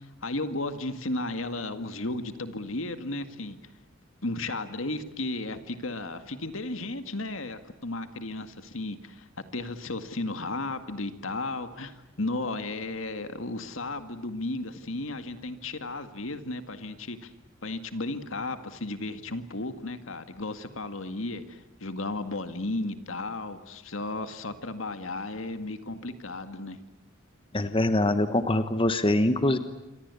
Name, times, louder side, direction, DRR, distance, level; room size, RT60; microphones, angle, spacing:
voice 1, 0.0-3.6 4.2-9.3 9.5-17.3 17.6-26.8, left 2 dB, 70° left, 9 dB, 2.1 m, -34 dB
voice 2, 27.5-29.6, left 1 dB, 25° left, 10 dB, 1.2 m, -24 dB
28.0 x 25.0 x 8.4 m, 0.95 s
head